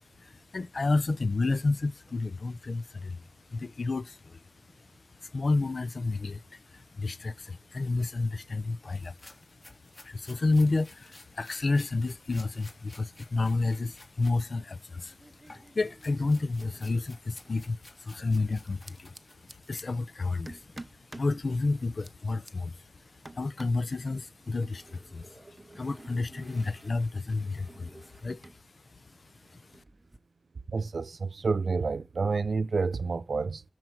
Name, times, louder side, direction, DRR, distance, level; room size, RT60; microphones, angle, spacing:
voice 1, 0.2-4.4 4.8-4.9 5.1-9.2 10.0-19.1 19.4-28.5 28.9-29.1 29.5-29.8, left 3 dB, 55° left, 0.7 m, -31 dB
sound 1, 8.9-14.4 14.7-19.7, left 2 dB, 40° left, 3.1 m, -55 dB
sound 2, 14.2-14.7 15.0-17.6 18.6-19.8 20.5-21.4 21.8-22.5 23.2-23.9 24.6-28.6 28.9-30.2, right 2 dB, 25° right, 0.9 m, -51 dB
voice 2, 30.7-33.6, right 4 dB, 70° right, 0.5 m, -29 dB
13.0 x 4.5 x 7.8 m
wide cardioid pair, 80°, 0 cm